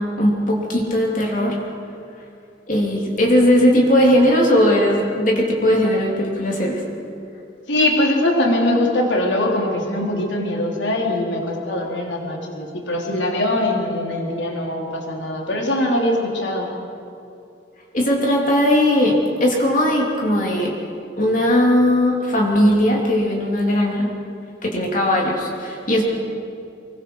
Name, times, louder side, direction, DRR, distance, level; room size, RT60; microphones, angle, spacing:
voice 1, 0.0-1.6 2.7-6.8 17.9-20.7 21.2-24.2 24.6-26.0, left 1 dB, 40° left, -1 dB, 3.0 m, -18 dB
voice 2, 7.7-16.7, left 1 dB, 70° left, 0 dB, 3.3 m, -22 dB
25.0 x 23.0 x 4.7 m, 2.6 s
head